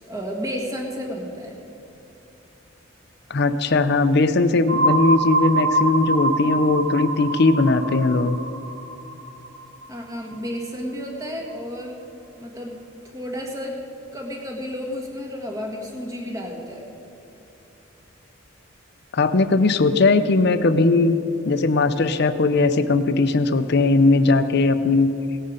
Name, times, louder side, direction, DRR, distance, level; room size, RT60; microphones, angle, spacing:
voice 1, 0.0-1.6 9.9-12.0 12.4-13.8 14.1-16.9, equal, 15° right, 0 dB, 1.6 m, -32 dB
voice 2, 3.3-8.4 19.1-21.1 21.5-25.1, left 3 dB, 50° left, 11 dB, 0.6 m, -19 dB
sound 1, 4.7-10.4, right 2 dB, 85° right, 3.5 m, -25 dB
17.5 x 9.7 x 5.1 m, 2.8 s
head